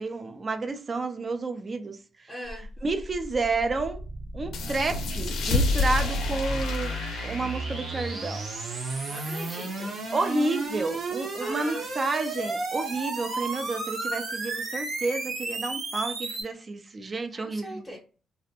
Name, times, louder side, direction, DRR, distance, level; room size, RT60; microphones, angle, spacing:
voice 1, 0.0-2.0 2.8-4.0 4.3-7.0 7.2-8.4 10.1-17.8, right 3 dB, 35° right, 0.4 m, -30 dB
voice 2, 2.3-2.7 9.0-10.0 11.4-12.1 12.3-12.7 17.3-18.0, right 1 dB, ahead, 0.8 m, -41 dB
sound 1, 2.5-16.4, right 2 dB, 65° right, 0.7 m, -33 dB
sound 2, 4.5-9.8, left 3 dB, 75° left, 0.5 m, -31 dB
2.5 x 2.0 x 2.7 m
cardioid pair, 90°, 0 cm